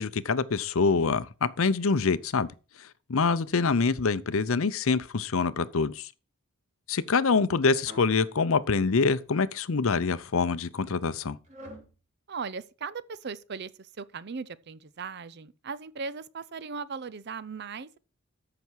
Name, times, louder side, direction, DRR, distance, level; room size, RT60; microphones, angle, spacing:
voice 1, 0.0-2.5 3.1-6.0 6.9-11.4, left 4 dB, 70° left, 0.6 m, -25 dB
sound 1, 7.8-8.2 8.8-9.5 10.2-10.5 11.4-11.9, equal, 35° right, 3.0 m, -48 dB
voice 2, 12.3-18.0, right 5 dB, 50° right, 0.5 m, -38 dB
13.5 x 5.9 x 4.6 m
head